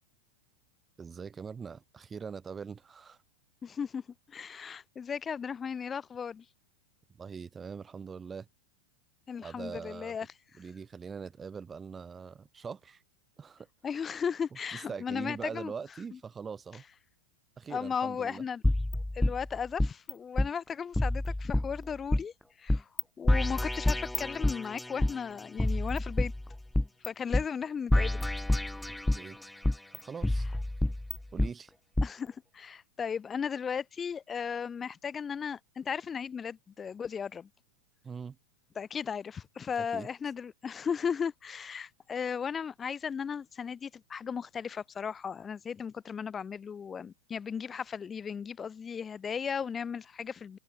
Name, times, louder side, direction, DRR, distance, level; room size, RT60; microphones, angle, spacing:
voice 1, 1.0-3.2 7.2-8.5 9.4-10.2 10.6-13.0 13.4-13.7 14.7-16.8 17.6-18.4 28.9-29.4 29.9-30.5 31.3-31.7 38.0-38.4 39.9-40.1, right 6 dB, 20° right, 3.9 m, -42 dB
voice 2, 3.6-4.0 4.3-6.4 9.3-10.3 13.8-15.7 17.7-18.6 19.1-22.3 22.6-22.9 23.2-26.3 27.0-28.3 32.0-37.5 38.8-50.6, left 6 dB, 20° left, 6.2 m, -36 dB
sound 1, 18.6-20.1 20.4-20.5 21.0-22.2 22.7-23.0 23.3-25.1 25.6-27.1 27.3-27.4 27.9-29.3 29.6-31.5 32.0-32.1, left 1 dB, 5° left, 3.2 m, -28 dB
figure-of-eight pair, 90°, 0 cm